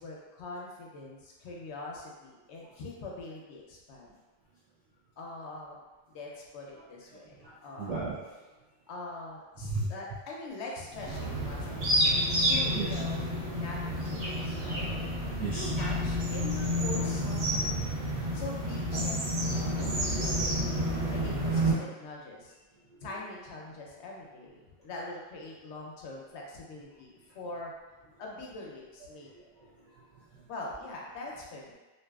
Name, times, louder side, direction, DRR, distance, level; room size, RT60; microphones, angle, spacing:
voice 1, 0.0-4.2 5.2-5.8 6.1-8.0 8.9-14.9 15.5-17.8 18.3-22.5 23.0-27.7 28.2-29.5 30.5-31.7, left 2 dB, 90° left, -2 dB, 0.9 m, -43 dB
voice 2, 7.1-8.4 9.6-9.9 11.7-13.0 15.4-15.9 22.9-23.0 29.3-30.4, right 3 dB, 55° right, -8 dB, 0.4 m, -38 dB
sound 1, 10.9-21.7, equal, 80° right, 1.2 m, -29 dB
2.6 x 2.3 x 2.3 m, 1.2 s
omnidirectional pair, 1.1 m